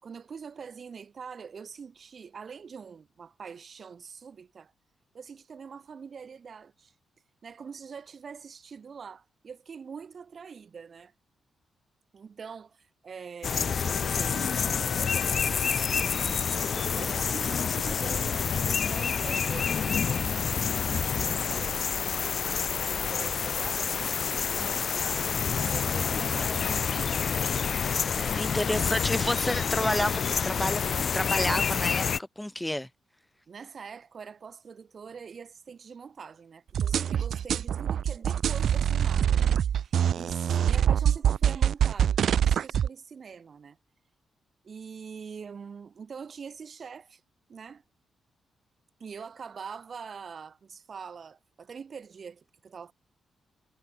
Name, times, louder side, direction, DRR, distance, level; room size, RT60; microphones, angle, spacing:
voice 1, 0.0-4.7 5.1-6.9 7.4-11.1 12.1-20.9 21.2-21.9 22.8-27.2 28.1-28.6 33.5-43.8 44.6-47.2 47.5-47.8 49.0-52.9, right 6 dB, 55° right, 4.8 m, -44 dB
sound 1, 13.4-32.2, left 6 dB, 60° left, 0.9 m, -28 dB
voice 2, 28.4-32.1 32.4-32.9, left 1 dB, 10° left, 1.5 m, -29 dB
sound 2, 36.7-42.9, right 9 dB, 70° right, 0.5 m, -24 dB
supercardioid pair, 55°, 0 cm